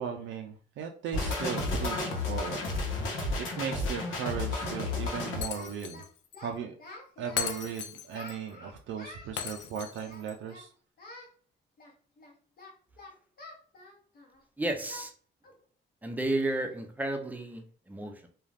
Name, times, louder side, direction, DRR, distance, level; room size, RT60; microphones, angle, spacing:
voice 1, 0.0-2.7 2.9-6.0 6.4-6.7 7.2-10.7, right 7 dB, 70° right, 3 dB, 0.4 m, -37 dB
Singing, 0.8-0.9 1.7-2.9 3.1-3.4 3.7-4.4 4.7-4.9 5.2-6.0 6.3-7.7 8.1-9.3 10.0-10.7 11.0-11.3 11.8-14.4 14.9-15.1 15.4-15.6 16.0-16.1 16.6-16.9, left 2 dB, 50° left, 0.9 m, -49 dB
sound 1, 1.1-5.4, left 2 dB, 85° left, 0.9 m, -32 dB
Shatter, 5.4-6.1 6.3-6.4 7.4-8.4 9.4-10.3, left 8 dB, 65° left, 0.4 m, -37 dB
voice 2, 14.6-15.1 16.0-18.3, right 1 dB, 10° right, 4 dB, 0.6 m, -32 dB
2.4 x 2.3 x 3.2 m, 0.43 s
cardioid pair, 90°, 20 cm